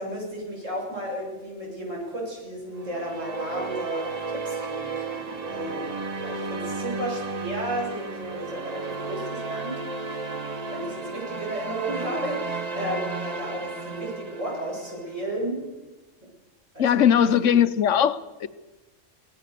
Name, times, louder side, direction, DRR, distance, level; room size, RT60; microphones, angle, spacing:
voice 1, 0.0-10.4 10.7-15.6 16.2-16.3 16.7-16.9 17.4-17.5, right 1 dB, 85° right, -2 dB, 7.3 m, -34 dB
sound 1, 2.8-15.1, right 3 dB, 35° right, 1.2 m, -33 dB
voice 2, 16.8-18.5, left 9 dB, 80° left, 14 dB, 1.2 m, -20 dB
24.0 x 17.0 x 6.8 m, 1.1 s
omnidirectional pair, 1.3 m